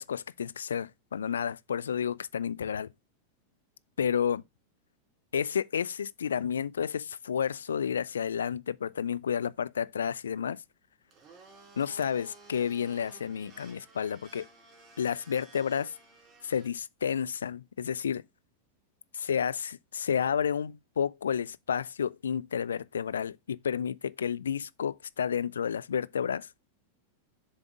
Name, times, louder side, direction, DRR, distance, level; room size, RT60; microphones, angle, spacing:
voice 1, 0.0-2.9 4.0-4.4 5.3-10.6 11.8-14.5 15.0-15.9 16.4-18.2 19.1-26.5, left 7 dB, 70° left, 0.3 m, -31 dB
Domestic sounds home sounds, 11.1-16.7, right 3 dB, 30° right, 2.9 m, -55 dB
7.0 x 3.5 x 4.9 m
figure-of-eight pair, 90°, 0 cm